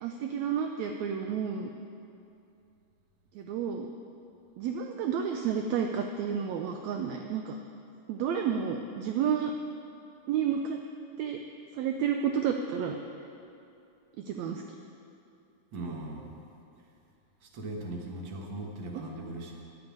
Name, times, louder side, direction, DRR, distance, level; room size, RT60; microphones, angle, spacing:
voice 1, 0.0-1.7 3.3-3.9 4.6-7.6 8.1-9.5 10.3-10.8 11.2-11.4 11.8-13.0 14.3-14.6, right 7 dB, 80° right, 4 dB, 1.6 m, -30 dB
voice 2, 15.7-16.3 17.4-19.5, right 2 dB, 45° right, 0 dB, 1.8 m, -39 dB
11.0 x 8.0 x 9.1 m, 2.6 s
omnidirectional pair, 3.8 m